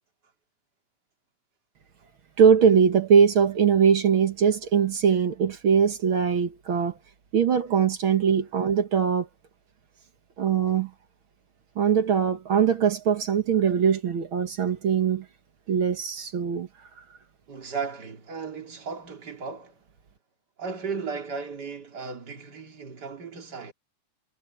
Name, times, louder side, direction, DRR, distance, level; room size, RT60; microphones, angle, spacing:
voice 1, 2.4-7.0 7.3-9.3 10.4-10.9 11.8-15.3 15.7-16.7, right 7 dB, 50° right, 1.8 m, -21 dB
voice 2, 17.5-19.8 20.6-23.7, right 5 dB, 35° right, 2.9 m, -35 dB
omnidirectional pair, 3.6 m